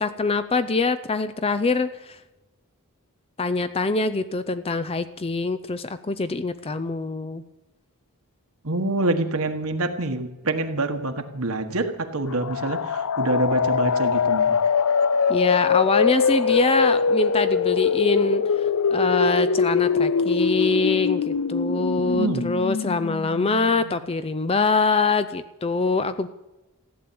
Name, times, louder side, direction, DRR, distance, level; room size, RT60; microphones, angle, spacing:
voice 1, 0.0-2.2 3.4-7.4 15.3-26.3, left 3 dB, 25° left, 12 dB, 0.5 m, -24 dB
voice 2, 8.6-14.6 22.1-22.4, right 2 dB, 70° right, 6 dB, 1.5 m, -26 dB
sound 1, 12.3-24.0, left 6 dB, 80° left, 0.5 m, -23 dB
15.0 x 10.5 x 8.6 m, 1.0 s
head